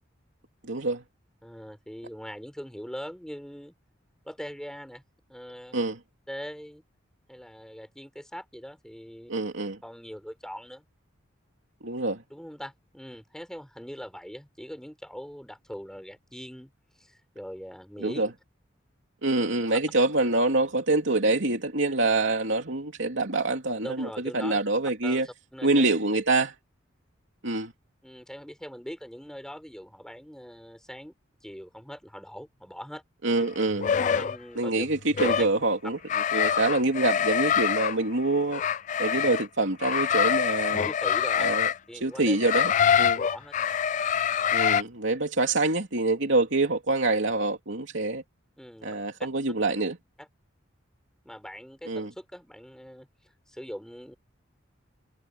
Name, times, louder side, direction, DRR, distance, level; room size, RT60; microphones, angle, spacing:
voice 1, 0.7-1.0 5.7-6.0 9.3-9.8 11.8-12.2 18.0-18.3 19.2-24.1 24.3-25.3 25.6-26.5 27.4-27.7 33.2-33.9 34.6-36.0 36.3-38.6 39.0-40.9 41.4-41.7 42.0-42.7 43.0-43.2 44.5-48.2 48.8-50.0 51.9-52.1, right 2 dB, 70° right, 2.8 m, -25 dB
voice 2, 1.4-3.7 4.3-5.0 5.3-5.8 6.3-6.8 7.3-9.3 9.8-10.8 12.3-16.7 17.0-18.2 23.8-24.6 25.0-25.9 28.0-31.1 31.4-33.0 33.4-33.5 34.0-34.9 35.2-35.5 36.3-36.7 40.7-41.6 41.9-42.4 43.2-43.5 48.6-48.9 50.2-50.3 51.2-54.2, equal, 5° left, 4.1 m, -41 dB
sound 1, 33.7-34.4 35.1-35.5 36.1-38.0 38.5-39.5 39.8-41.8 42.4-44.8, left 8 dB, 40° left, 0.3 m, -25 dB
head